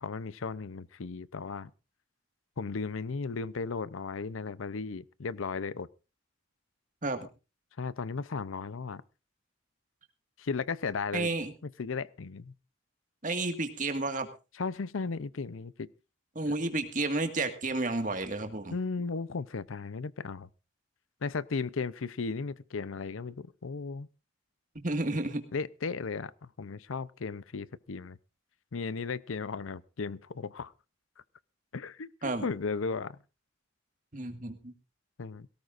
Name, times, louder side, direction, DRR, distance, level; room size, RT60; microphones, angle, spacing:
voice 1, 0.0-1.7 2.6-5.9 7.8-9.0 10.4-11.3 11.6-12.5 14.5-15.9 18.7-20.5 21.2-24.1 25.5-28.2 28.7-30.7 31.7-32.1 32.4-33.2 35.2-35.5, left 4 dB, 85° left, 18 dB, 0.6 m, -35 dB
voice 2, 11.1-11.5 13.2-14.3 16.3-18.7 24.7-25.4 32.2-32.4 34.1-34.7, right 2 dB, 40° right, 7 dB, 1.9 m, -31 dB
18.0 x 17.5 x 2.6 m, 0.31 s
head